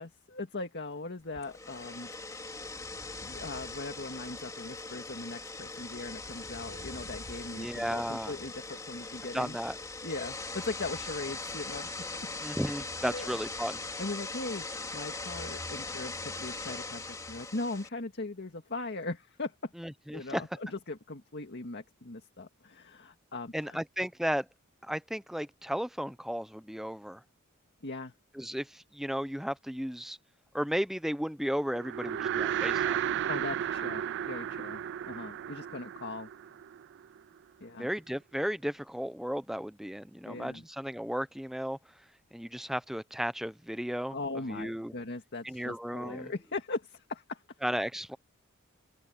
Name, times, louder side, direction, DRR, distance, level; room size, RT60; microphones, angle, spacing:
voice 1, 0.0-2.5 3.1-9.6 10.0-11.9 13.0-13.3 14.0-19.7 20.1-23.8 27.8-28.1 33.3-36.3 37.6-37.9 40.3-40.6 44.1-47.4, left 2 dB, 50° left, 1.9 m, -39 dB
sound 1, 1.3-17.9, left 3 dB, 15° left, 2.6 m, -40 dB
voice 2, 7.5-8.4 9.3-9.8 12.4-13.8 19.8-20.4 23.5-24.5 24.8-27.2 28.3-30.2 30.5-33.0 37.8-41.8 42.3-44.2 44.5-44.9 45.4-46.3 47.6-48.2, equal, ahead, 0.7 m, -34 dB
sound 2, 31.7-37.2, right 9 dB, 55° right, 0.3 m, -33 dB
open air
head